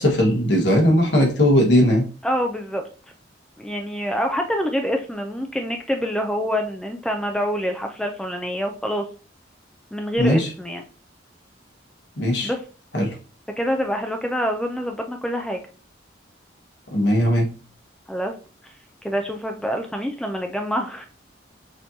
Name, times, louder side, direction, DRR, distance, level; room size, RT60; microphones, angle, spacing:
voice 1, 0.0-2.0 10.2-10.5 12.2-12.5 12.9-13.1 16.9-17.5, equal, 65° left, 1 dB, 1.3 m, -18 dB
voice 2, 2.2-2.8 3.6-9.0 9.9-10.8 12.4-12.6 13.6-15.6 18.1-18.3 19.0-21.0, equal, 5° left, 4 dB, 0.3 m, -26 dB
6.3 x 2.9 x 2.7 m, 0.37 s
head